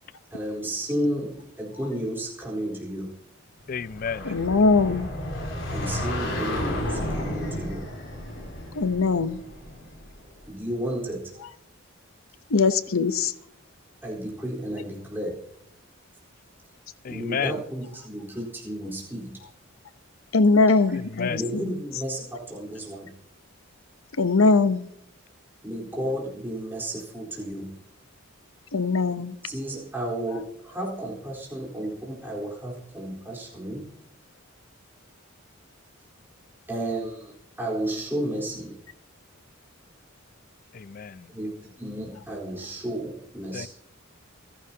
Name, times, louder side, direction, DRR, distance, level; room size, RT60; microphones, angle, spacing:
voice 1, 0.3-3.1 5.7-7.9 10.4-11.2 14.0-15.3 17.1-19.3 20.7-20.9 21.2-23.1 25.6-27.7 29.4-33.9 36.7-38.8 41.3-43.7, right 1 dB, 10° right, 4.1 m, -32 dB
voice 2, 3.7-4.3 17.0-17.5 21.2-21.4 40.7-41.3 43.5-43.7, left 6 dB, 45° left, 0.4 m, -31 dB
sound 1, 3.8-10.4, left 1 dB, 60° left, 5.9 m, -32 dB
voice 3, 4.2-5.1 8.8-9.4 12.5-13.3 20.3-21.7 24.2-24.9 28.7-29.3, left 3 dB, 85° left, 0.9 m, -21 dB
29.0 x 11.0 x 2.9 m
head